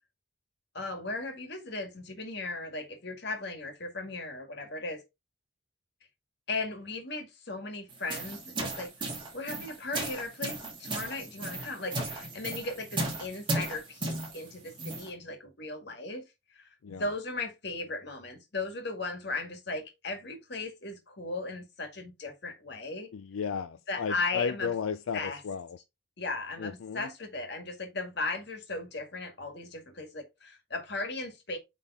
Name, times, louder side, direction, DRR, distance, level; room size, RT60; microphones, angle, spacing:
voice 1, 0.7-5.0 6.5-16.2 16.5-23.1 23.9-24.7 25.1-25.4 26.2-31.6, left 3 dB, 55° left, 1.8 m, -37 dB
sound 1, 7.9-15.1, right 2 dB, 25° right, 2.4 m, -36 dB
voice 2, 23.1-25.7 26.6-27.1, left 6 dB, 90° left, 0.4 m, -34 dB
8.1 x 3.6 x 3.7 m
head